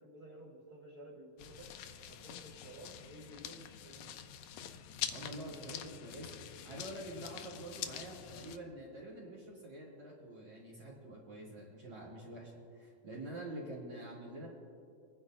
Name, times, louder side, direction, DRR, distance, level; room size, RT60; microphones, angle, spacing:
voice 1, 0.0-1.7 2.0-4.2, right 1 dB, 80° right, -3 dB, 0.8 m, -53 dB
sound 1, 1.4-8.6, left 9 dB, 75° left, 1.7 m, -45 dB
voice 2, 5.0-6.3 6.6-14.5, right 1 dB, 45° right, -6 dB, 2.9 m, -47 dB
27.0 x 10.5 x 2.5 m, 2.6 s
omnidirectional pair, 3.3 m